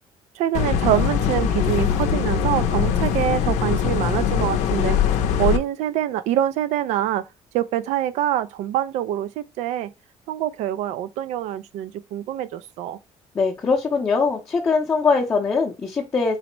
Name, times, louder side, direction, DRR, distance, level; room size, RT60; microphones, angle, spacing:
voice 1, 0.4-5.0 5.4-7.2 7.5-9.9 10.3-13.0, right 12 dB, 80° right, 0.4 m, -25 dB
sound 1, 0.5-5.6, left 8 dB, 80° left, 0.6 m, -22 dB
voice 2, 13.3-16.4, left 4 dB, 20° left, 0.6 m, -21 dB
4.0 x 2.1 x 4.4 m
cardioid pair, 165°, 12 cm